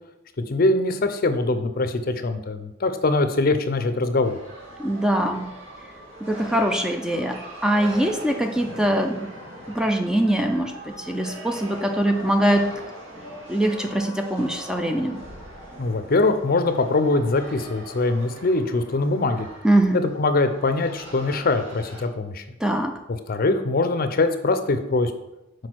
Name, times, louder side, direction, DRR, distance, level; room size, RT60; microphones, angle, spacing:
voice 1, 0.5-4.4 15.8-19.5 19.9-22.4 23.1-25.1, left 2 dB, 45° left, 9 dB, 0.5 m, -22 dB
sound 1, 4.2-22.0, right 1 dB, 70° right, 2.4 m, -41 dB
voice 2, 4.8-5.5 6.2-9.3 9.7-12.7 13.5-15.2 19.6-20.0 22.6-23.0, right 1 dB, 5° right, 4 dB, 0.4 m, -22 dB
6.1 x 4.7 x 4.5 m, 0.93 s
head